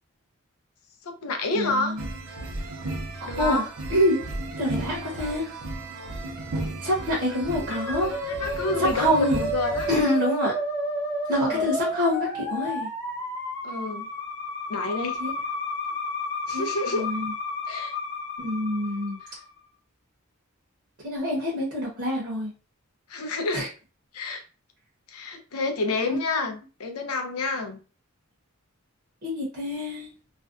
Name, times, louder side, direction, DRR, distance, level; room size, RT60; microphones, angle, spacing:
voice 1, 1.0-1.9 3.2-3.6 7.5-8.0 8.3-9.9 11.3-11.7 13.6-14.1 14.7-15.2 16.5-17.1 17.7-17.9 23.1-23.7 24.1-24.4 25.1-27.8, left 3 dB, 85° left, 5 dB, 0.6 m, -29 dB
voice 2, 1.5-2.0 3.2-3.6 3.9-4.2 4.6-5.5 6.8-8.1 8.8-9.5 9.9-10.5 11.3-12.9 15.2-15.3 16.5-17.3 18.4-19.2 21.0-22.5 23.5-23.7 26.1-26.2 29.2-30.1, equal, 50° right, -6 dB, 0.7 m, -26 dB
sound 1, 2.0-10.0, right 2 dB, 80° right, 0.5 m, -35 dB
Musical instrument, 7.7-19.5, left 1 dB, 10° left, 0.6 m, -31 dB
2.5 x 2.2 x 2.3 m, 0.34 s
head